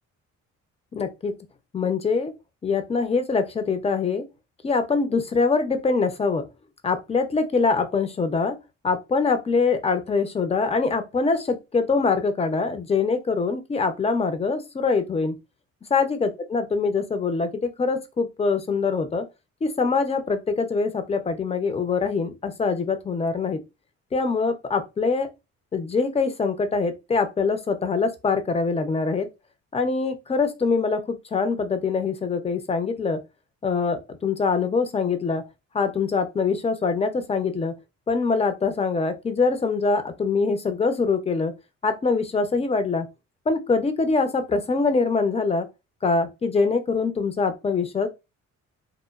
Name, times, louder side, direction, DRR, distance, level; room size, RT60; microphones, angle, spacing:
voice 1, 0.9-1.3 1.7-2.3 2.6-4.3 4.6-6.5 6.8-8.6 8.8-15.4 15.9-19.3 19.6-23.6 24.1-25.3 25.7-29.3 29.7-33.2 33.6-35.4 35.7-37.8 38.1-41.5 41.8-43.1 43.5-45.7 46.0-48.1, left 4 dB, 20° left, 0.5 m, -24 dB
2.9 x 2.1 x 2.3 m
cardioid pair, 90°, 30 cm